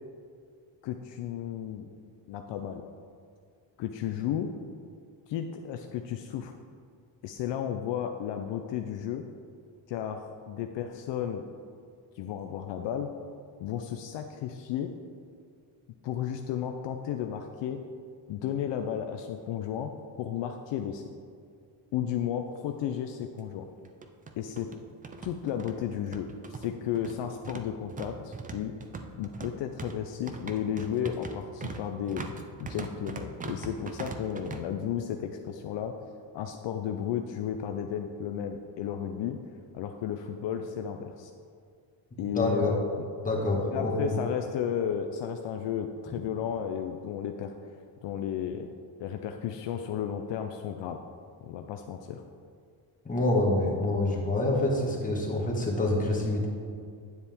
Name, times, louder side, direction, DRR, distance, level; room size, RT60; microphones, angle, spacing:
voice 1, 0.8-1.9 2.3-2.8 3.8-4.5 5.3-6.5 7.2-9.2 9.9-11.4 12.2-13.1 13.6-14.9 16.0-17.8 18.3-19.9 20.2-21.0 21.9-23.7 24.4-24.7 25.2-28.7 29.2-32.2 32.6-35.9 36.3-39.4 39.7-41.3 42.2-42.8 43.7-47.5 48.0-48.7 49.0-51.0 51.4-52.2, left 9 dB, 65° left, 5 dB, 0.6 m, -33 dB
sound 1, 22.5-22.6 22.9-23.0 23.8-34.6, right 3 dB, 20° right, 0.3 m, -41 dB
voice 2, 42.2-42.7 43.2-44.1 53.0-56.5, left 2 dB, 15° left, -3 dB, 1.5 m, -27 dB
9.6 x 6.9 x 3.6 m, 2.2 s
cardioid pair, 140°, 48 cm